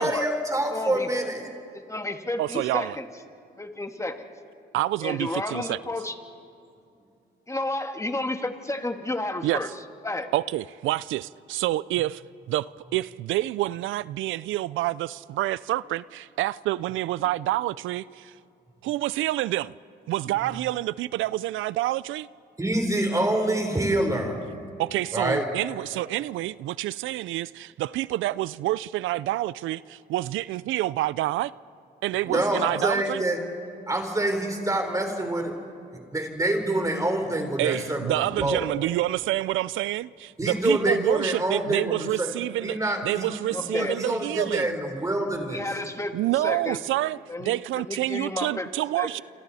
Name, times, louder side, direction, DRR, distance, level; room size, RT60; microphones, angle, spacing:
voice 1, 0.0-1.5 22.6-24.4 25.1-25.4 32.2-33.4 33.9-35.5 36.1-38.7 40.4-42.3 42.6-45.6, right 1 dB, 15° right, 3.8 m, -26 dB
voice 2, 0.7-1.1 1.7-3.1 3.6-4.3 5.0-6.2 7.5-9.7 10.0-10.3 43.5-44.0 45.5-46.8 47.3-48.7 48.9-49.1, left 2 dB, 15° left, 1.8 m, -31 dB
voice 3, 2.4-3.0 4.7-5.8 9.4-9.6 10.3-12.2 12.5-12.7 12.9-18.3 18.8-19.7 20.1-22.3 24.8-31.5 32.0-33.2 37.6-42.8 43.0-44.7 46.1-49.2, right 16 dB, 85° right, 0.4 m, -28 dB
27.5 x 27.0 x 4.2 m
cardioid pair, 90°, 20 cm